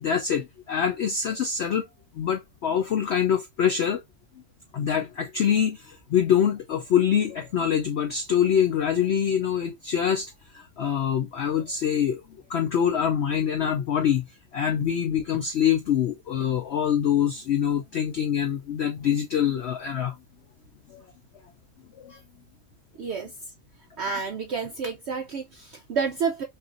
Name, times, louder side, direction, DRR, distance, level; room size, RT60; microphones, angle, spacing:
voice 1, 0.0-1.8 2.1-4.0 4.7-12.2 12.5-14.3 14.5-20.1 20.9-21.1 22.0-22.2, left 8 dB, 75° left, 0.6 m, -25 dB
voice 2, 23.0-23.3 24.0-26.4, right 5 dB, 75° right, 0.6 m, -29 dB
5.6 x 2.5 x 2.5 m
omnidirectional pair, 1.7 m